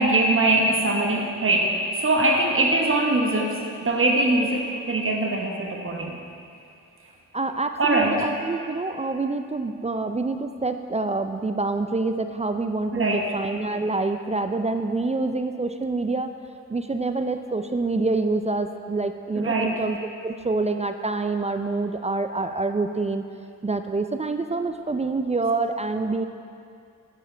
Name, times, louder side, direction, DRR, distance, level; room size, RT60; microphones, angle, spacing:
voice 1, 0.0-6.2 7.8-8.3 12.9-13.3 19.3-19.8, right 2 dB, 40° right, 0 dB, 1.2 m, -22 dB
voice 2, 7.3-16.3 16.7-20.0 20.2-23.2 23.6-26.2, right 3 dB, 20° right, 7 dB, 0.4 m, -26 dB
8.6 x 7.3 x 3.3 m, 2.5 s
supercardioid pair, 45°, 35 cm